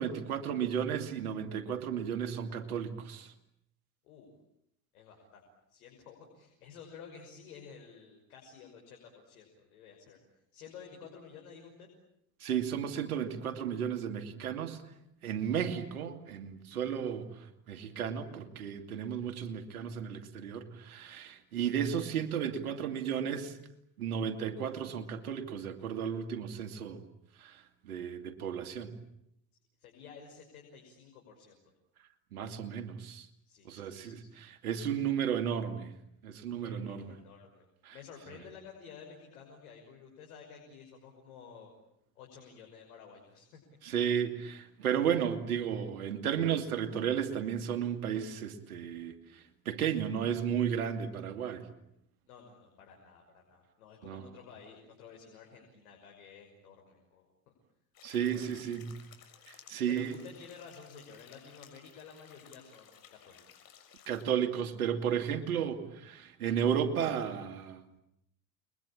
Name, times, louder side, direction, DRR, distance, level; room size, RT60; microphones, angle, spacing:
voice 1, 0.0-3.3 12.4-14.8 15.2-23.6 24.0-27.0 27.4-27.6 27.8-28.9 32.3-33.3 33.7-35.9 36.2-37.1 37.8-37.9 43.8-51.7 54.1-54.3 58.0-58.9 59.5-60.2 64.1-68.0, right 8 dB, 90° right, 8 dB, 2.7 m, -33 dB
voice 2, 4.9-5.4 5.7-10.2 10.5-11.9 29.8-31.6 33.4-34.3 36.6-41.7 42.1-43.6 52.3-57.5 58.2-58.6 59.9-63.6, left 6 dB, 80° left, 1 dB, 6.1 m, -52 dB
sound 1, 57.9-64.2, left 9 dB, 50° left, 6.7 m, -57 dB
30.0 x 22.5 x 8.9 m, 0.79 s
hypercardioid pair, 80°, 43 cm